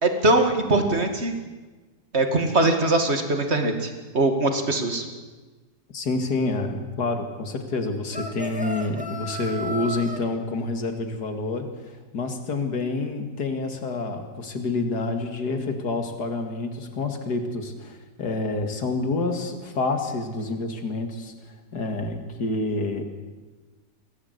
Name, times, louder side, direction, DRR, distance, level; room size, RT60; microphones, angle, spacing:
voice 1, 0.0-1.3 2.1-5.0, right 2 dB, 35° right, 6 dB, 2.4 m, -22 dB
voice 2, 5.9-21.3 21.7-23.0, left 3 dB, 65° left, 6 dB, 2.7 m, -28 dB
sound 1, 8.1-10.2, equal, 5° right, 2.0 m, -33 dB
23.5 x 17.0 x 8.2 m, 1.3 s
omnidirectional pair, 1.9 m